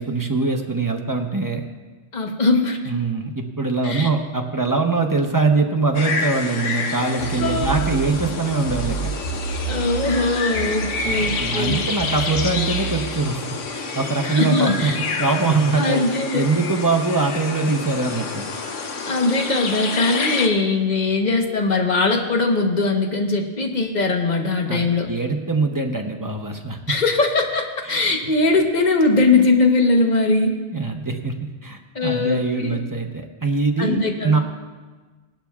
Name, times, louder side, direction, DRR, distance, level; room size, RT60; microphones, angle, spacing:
voice 1, 0.0-1.6 2.9-9.1 11.0-13.4 13.7-18.5 24.7-27.0 27.9-28.0 30.7-34.4, right 3 dB, 20° right, 3 dB, 0.6 m, -23 dB
voice 2, 2.1-2.8 3.8-4.1 7.4-7.9 9.7-11.8 14.2-15.0 15.8-16.4 19.0-25.1 26.9-30.5 31.9-32.8 33.8-34.4, left 3 dB, 40° left, 2 dB, 1.2 m, -20 dB
sound 1, 5.9-20.5, left 4 dB, 85° left, 1.3 m, -28 dB
sound 2, 7.2-10.3 10.5-13.1, right 6 dB, 60° left, 1.9 m, -28 dB
18.5 x 11.5 x 2.4 m, 1.3 s
omnidirectional pair, 1.2 m